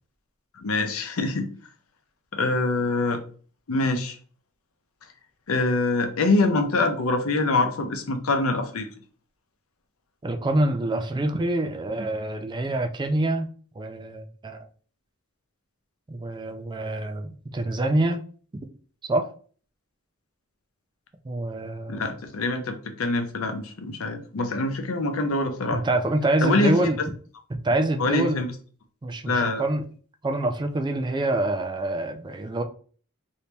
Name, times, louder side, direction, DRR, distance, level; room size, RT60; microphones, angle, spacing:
voice 1, 0.6-1.5 2.3-3.2 3.7-4.2 5.5-8.9 21.9-25.8 26.4-26.9 28.0-28.5 29.3-29.6, left 2 dB, 75° left, 6 dB, 0.6 m, -24 dB
voice 2, 10.2-13.5 13.8-14.6 16.1-18.2 19.0-19.3 21.2-22.1 25.7-27.0 27.6-28.4 29.0-29.8 30.2-32.6, right 2 dB, 20° right, 6 dB, 0.4 m, -26 dB
2.9 x 2.7 x 3.3 m, 0.42 s
head